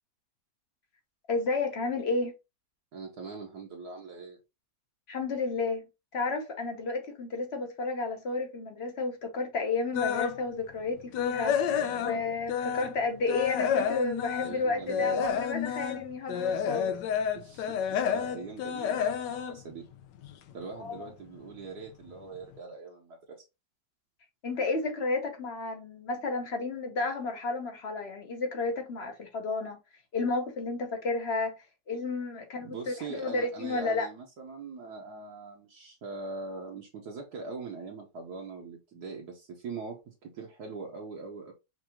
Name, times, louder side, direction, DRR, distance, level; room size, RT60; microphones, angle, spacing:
voice 1, 1.3-2.3 5.1-5.8 6.1-17.0 20.8-21.1 24.4-29.8 30.1-31.5 31.9-34.1, left 3 dB, 45° left, 0.9 m, -32 dB
voice 2, 2.9-4.4 11.6-12.2 14.4-15.3 17.3-19.8 20.5-23.5 32.6-41.5, right 4 dB, 65° right, 1.4 m, -42 dB
sound 1, 9.9-10.4 10.8-13.0 13.3-20.5 20.9-21.1 21.6-21.7 22.1-22.2, left 8 dB, 85° left, 1.3 m, -30 dB
6.0 x 2.6 x 2.9 m
omnidirectional pair, 1.9 m